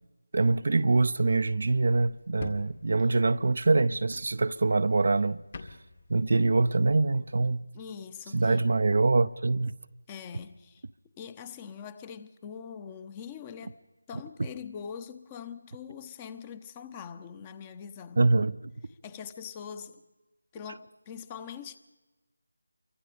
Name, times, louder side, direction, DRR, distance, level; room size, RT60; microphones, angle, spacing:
voice 1, 0.3-5.4 6.1-7.6 8.3-9.7 18.2-18.7, right 3 dB, 50° right, 0.7 m, -24 dB
sound 1, 1.5-6.4, left 3 dB, 40° left, 1.9 m, -48 dB
voice 2, 7.7-8.6 10.1-10.8 11.2-13.8 14.1-18.2 18.9-20.0 20.5-21.8, left 7 dB, 15° left, 1.0 m, -43 dB
28.5 x 24.0 x 5.2 m
figure-of-eight pair, 165°, 0 cm